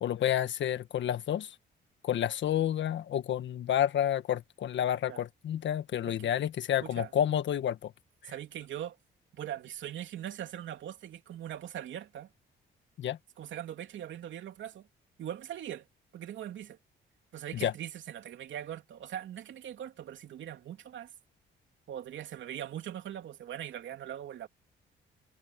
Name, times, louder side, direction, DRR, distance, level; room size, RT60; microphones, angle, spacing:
voice 1, 0.0-1.5 2.0-7.9 8.2-8.3 13.0-13.2 17.5-17.7, left 10 dB, 65° left, 1.6 m, -30 dB
voice 2, 6.8-7.1 8.2-9.0 9.3-12.3 13.4-14.9 15.2-15.9 16.1-16.8 17.3-21.1 21.9-24.5, right 10 dB, 70° right, 3.1 m, -41 dB
cardioid pair, 90°, 20 cm